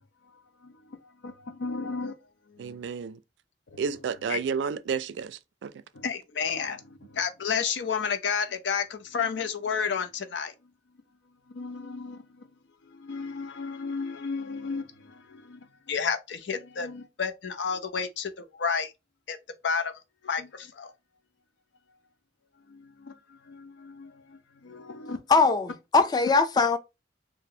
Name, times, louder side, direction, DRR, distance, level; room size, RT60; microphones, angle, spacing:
voice 1, 0.6-2.2 2.5-2.8 3.7-3.8 4.3-4.4 5.9-10.5 11.5-12.5 12.8-18.9 19.3-19.4 19.6-19.9 20.2-20.9 22.7-25.2 26.3-26.4, left 6 dB, 90° left, 0.5 m, -32 dB
voice 2, 2.6-3.2 3.8-5.7, right 6 dB, 75° right, 0.3 m, -31 dB
voice 3, 25.3-26.8, left 4 dB, 25° left, 0.3 m, -21 dB
2.7 x 2.0 x 3.7 m
head